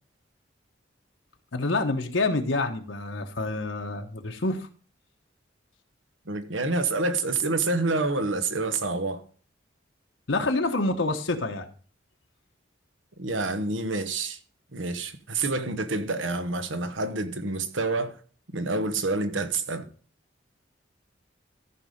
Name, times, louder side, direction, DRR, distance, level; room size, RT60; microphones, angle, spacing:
voice 1, 1.5-4.7 10.3-11.7, left 2 dB, 80° left, 1.1 m, -27 dB
voice 2, 6.3-9.2 13.2-14.4 14.7-18.2 18.5-19.8, right 3 dB, 80° right, 1.2 m, -28 dB
14.0 x 5.4 x 5.1 m
head